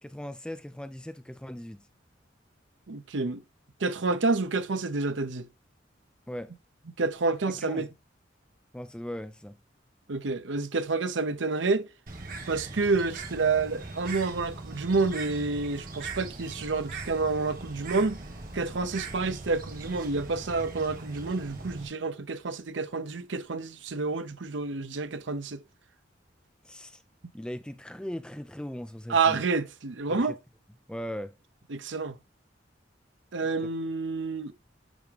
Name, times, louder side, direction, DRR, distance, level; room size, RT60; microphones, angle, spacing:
voice 1, 0.0-1.8 6.3-6.5 7.5-7.9 8.7-9.6 26.6-27.0 27.3-29.4 30.1-30.4 30.9-31.4, equal, 5° left, 0.4 m, -39 dB
voice 2, 2.9-3.4 3.8-5.5 7.0-7.9 10.1-11.9 12.5-18.2 18.5-25.6 29.1-30.4 31.7-32.1 33.3-34.5, right 3 dB, 75° right, 0.7 m, -29 dB
Bird, 12.1-21.9, right 3 dB, 50° right, 1.5 m, -40 dB
10.0 x 3.6 x 3.4 m
head